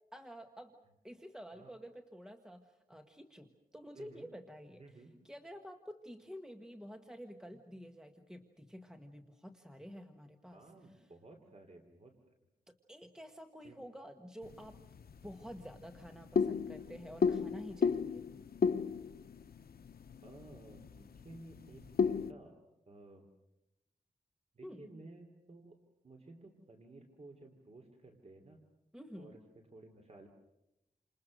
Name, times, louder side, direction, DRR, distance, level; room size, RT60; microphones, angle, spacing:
voice 1, 0.1-0.8 1.0-11.1 12.9-14.8 15.2-18.3 24.6-24.9 28.9-29.4, equal, 5° right, 5 dB, 1.5 m, -50 dB
voice 2, 3.9-4.3 4.8-5.1 10.5-12.1 13.6-13.8 16.8-16.9 20.2-22.6 22.9-23.3 24.5-25.7 26.0-28.6 29.2-29.4 29.7-30.3, right 2 dB, 45° right, 3 dB, 3.2 m, -55 dB
sound 1, 14.4-22.3, left 6 dB, 80° left, 0.9 m, -35 dB
29.5 x 27.5 x 6.6 m, 0.89 s
wide cardioid pair, 140°, 15 cm